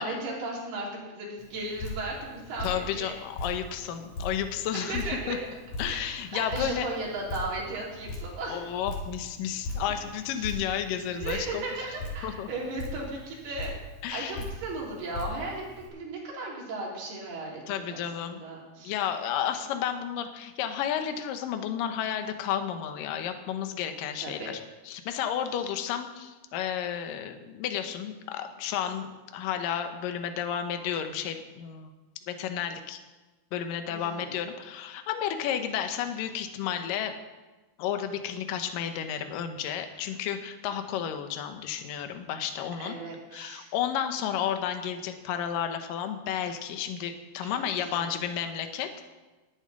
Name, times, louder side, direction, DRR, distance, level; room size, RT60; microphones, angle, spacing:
voice 1, 0.0-3.2 4.7-5.4 5.9-8.6 10.3-10.6 11.1-13.8 14.1-15.6 15.9-18.9 24.2-24.5 33.9-34.3 39.9-40.1 42.8-43.7 47.4-48.2, right 2 dB, 70° right, -3 dB, 5.1 m, -36 dB
Drip, 1.4-15.9, left 1 dB, 45° left, 3.5 m, -40 dB
voice 2, 2.6-5.4 5.8-6.9 8.5-11.6 12.2-12.5 14.0-14.5 17.7-18.4 18.8-24.6 24.9-31.9 32.3-33.0 33.5-37.2 37.8-43.0 43.3-49.1, left 9 dB, 70° left, 7 dB, 2.3 m, -32 dB
11.5 x 7.1 x 9.8 m, 1.2 s
omnidirectional pair, 4.7 m